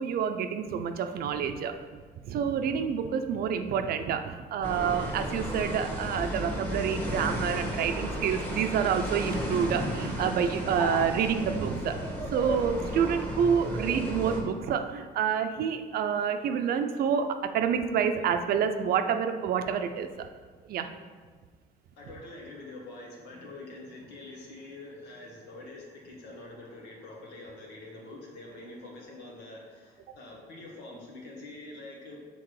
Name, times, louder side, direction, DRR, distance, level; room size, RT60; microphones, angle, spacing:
voice 1, 0.0-1.7 2.2-12.0 12.3-17.3 17.5-20.3 20.7-20.9, right 7 dB, 65° right, 8 dB, 0.5 m, -28 dB
sound 1, 4.6-14.4, equal, 10° left, 1.3 m, -33 dB
voice 2, 22.0-32.2, left 2 dB, 85° left, -1 dB, 1.5 m, -45 dB
6.0 x 3.6 x 4.8 m, 1.5 s
cardioid pair, 110°, 17 cm